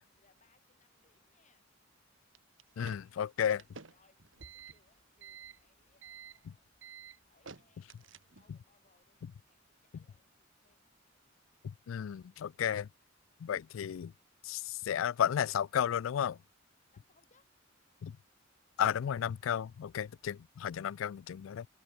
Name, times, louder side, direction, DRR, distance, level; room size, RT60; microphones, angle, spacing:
voice 1, 0.2-1.7 3.3-10.9 16.9-17.5, left 3 dB, 40° left, 5.7 m, -72 dB
sound 1, 2.3-8.6, right 6 dB, 75° right, 2.1 m, -52 dB
voice 2, 2.8-3.6 11.6-12.9 13.4-14.1 14.4-16.4 18.0-18.2 18.8-21.7, left 9 dB, 80° left, 0.3 m, -33 dB
head